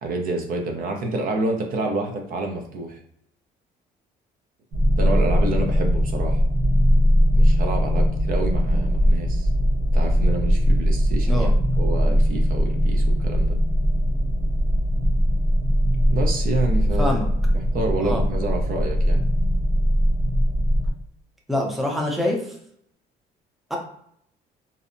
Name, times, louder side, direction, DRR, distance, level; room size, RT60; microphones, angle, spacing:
voice 1, 0.0-3.0 5.0-6.4 7.3-9.5 9.9-11.5 11.8-13.6 16.1-17.2 17.7-19.2, right 2 dB, 55° right, 3 dB, 0.6 m, -28 dB
sound 1, 4.7-20.9, equal, 80° right, 1.0 m, -20 dB
voice 2, 21.5-22.6 23.7-23.8, left 1 dB, ahead, 0 dB, 0.5 m, -25 dB
2.6 x 2.0 x 2.5 m, 0.69 s
cardioid pair, 110°, 17 cm